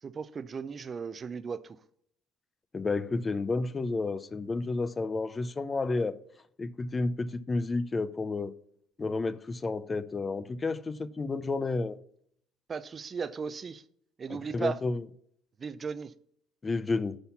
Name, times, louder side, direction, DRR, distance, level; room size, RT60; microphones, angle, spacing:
voice 1, 0.0-1.8 12.7-13.8 14.2-14.8 15.6-16.1, right 5 dB, 35° right, 0.5 m, -36 dB
voice 2, 2.7-6.2 6.6-8.5 9.0-12.0 14.3-15.0 16.6-17.2, left 3 dB, 25° left, 0.5 m, -31 dB
9.7 x 4.1 x 5.7 m
supercardioid pair, 85°, 0 cm